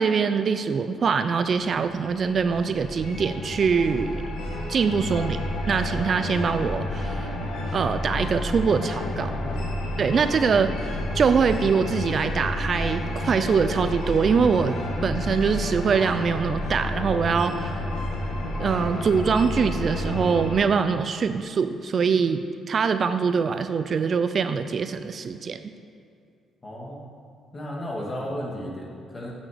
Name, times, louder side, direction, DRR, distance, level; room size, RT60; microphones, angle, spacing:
voice 1, 0.0-4.2 4.7-7.4 7.7-9.3 10.0-14.8 15.0-17.8 18.6-25.6, right 5 dB, 50° right, 10 dB, 0.4 m, -23 dB
sound 1, 1.7-20.6, left 1 dB, 85° left, 1.7 m, -30 dB
voice 2, 9.1-9.8 26.6-27.0 27.5-29.3, equal, 30° left, -2 dB, 2.2 m, -34 dB
9.1 x 6.3 x 6.7 m, 2.3 s
cardioid pair, 90°, 0 cm